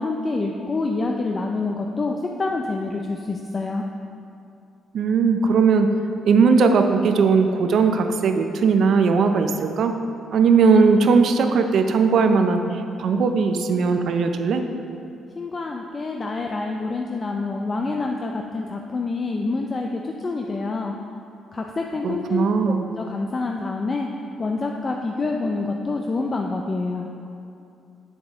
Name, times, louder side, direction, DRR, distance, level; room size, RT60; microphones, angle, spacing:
voice 1, 0.0-3.8 15.4-20.9 21.5-24.1 24.4-27.1, left 3 dB, 35° left, 2 dB, 0.4 m, -27 dB
voice 2, 4.9-5.9 6.2-9.9 10.3-12.6 13.0-14.7 22.0-22.8, right 5 dB, 65° right, 6 dB, 0.5 m, -18 dB
7.0 x 6.3 x 3.5 m, 2.6 s
cardioid pair, 90°, 0 cm